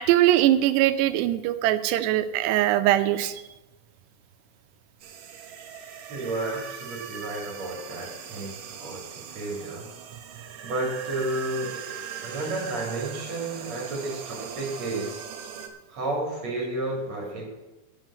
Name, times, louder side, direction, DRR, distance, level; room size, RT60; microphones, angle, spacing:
voice 1, 0.0-3.4, right 13 dB, 90° right, 11 dB, 2.9 m, -21 dB
Horror voices screaming and whispering, 5.0-15.7, right 8 dB, 65° right, 2.2 m, -40 dB
voice 2, 6.1-9.9 10.6-11.7 12.2-15.2 15.9-17.5, right 2 dB, 45° right, -1 dB, 3.4 m, -32 dB
8.7 x 7.5 x 8.7 m, 1.1 s
omnidirectional pair, 4.8 m